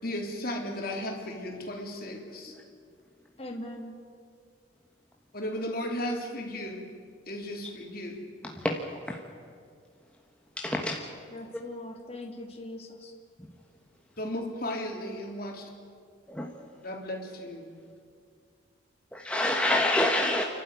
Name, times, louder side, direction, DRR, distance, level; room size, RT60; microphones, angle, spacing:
voice 1, 0.0-2.6 5.3-6.9 7.3-8.4 14.2-15.7 16.8-17.8, left 1 dB, 50° left, 1 dB, 3.5 m, -35 dB
voice 2, 3.4-3.9 11.3-13.1, left 1 dB, 30° left, 1 dB, 2.7 m, -41 dB
voice 3, 10.6-11.0 16.3-16.5 19.1-20.4, left 1 dB, 5° left, 1 dB, 1.3 m, -27 dB
29.5 x 12.5 x 9.7 m, 2.2 s
head